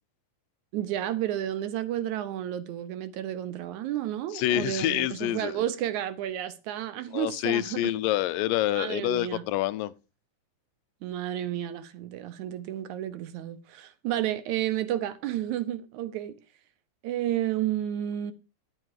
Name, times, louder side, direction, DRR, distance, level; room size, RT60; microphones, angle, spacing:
voice 1, 0.7-7.9 8.7-9.4 11.0-16.4 17.0-18.3, right 12 dB, 70° right, 2.0 m, -31 dB
voice 2, 4.3-5.6 7.1-9.9, left 14 dB, 90° left, 2.4 m, -27 dB
10.5 x 8.9 x 4.7 m
omnidirectional pair, 3.8 m